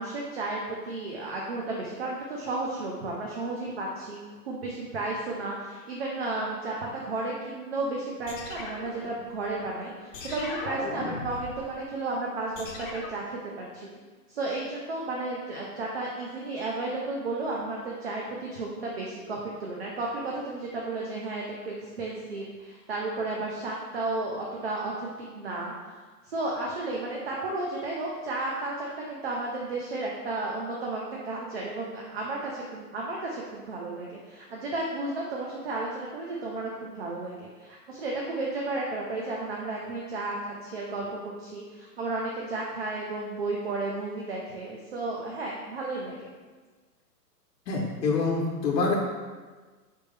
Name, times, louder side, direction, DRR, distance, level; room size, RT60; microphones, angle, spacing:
voice 1, 0.0-13.9 14.3-25.7 26.2-46.3, right 2 dB, 40° right, -2 dB, 0.5 m, -33 dB
sound 1, 8.3-9.6 10.1-11.7 12.6-13.3, left 3 dB, 55° left, 0.8 m, -38 dB
voice 2, 47.7-49.0, left 4 dB, 85° left, -1 dB, 1.0 m, -26 dB
4.2 x 3.4 x 3.1 m, 1.4 s
hypercardioid pair, 160°, 49 cm